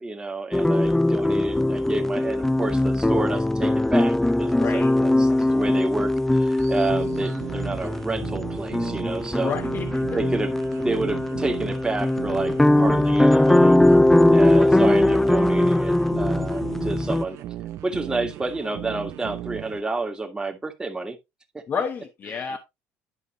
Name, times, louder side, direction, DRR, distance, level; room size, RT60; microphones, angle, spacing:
voice 1, 0.0-9.5 10.1-10.5 10.8-13.8 14.3-17.4 17.8-21.2 21.5-21.6 22.3-22.6, right 3 dB, 15° right, 1.9 m, -30 dB
sound 1, 0.5-17.2, left 1 dB, 5° left, 0.4 m, -20 dB
voice 2, 4.5-4.9 9.4-10.2 21.7-22.6, left 6 dB, 40° left, 1.2 m, -30 dB
sound 2, 6.6-19.8, right 13 dB, 65° right, 0.9 m, -36 dB
11.0 x 5.3 x 3.1 m
supercardioid pair, 100°, 5 cm